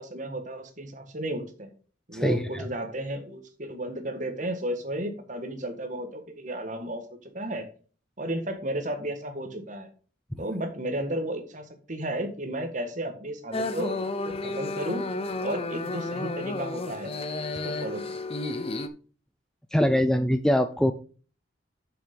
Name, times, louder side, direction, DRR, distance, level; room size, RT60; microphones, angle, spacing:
voice 1, 0.0-1.7 2.1-7.7 8.2-9.9 10.4-14.0 14.2-15.1 15.4-17.1 17.5-18.0, right 1 dB, 40° right, 6 dB, 1.6 m, -33 dB
voice 2, 2.1-2.6 10.3-10.4 19.7-20.9, equal, 5° left, 9 dB, 0.4 m, -23 dB
sound 1, 13.5-18.9, left 2 dB, 30° left, 0.7 m, -32 dB
6.8 x 6.5 x 5.2 m, 0.39 s
head